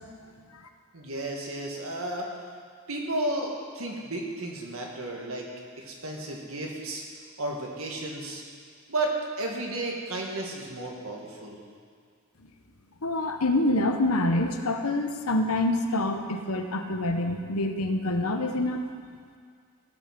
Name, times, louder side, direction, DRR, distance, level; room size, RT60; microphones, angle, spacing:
voice 1, 0.9-2.4 2.9-5.5 5.8-7.0 7.4-8.4 8.9-11.6, right 2 dB, 70° right, 0 dB, 2.0 m, -33 dB
voice 2, 13.0-18.8, left 1 dB, 80° left, 5 dB, 1.0 m, -26 dB
16.5 x 6.1 x 6.1 m, 2.1 s
head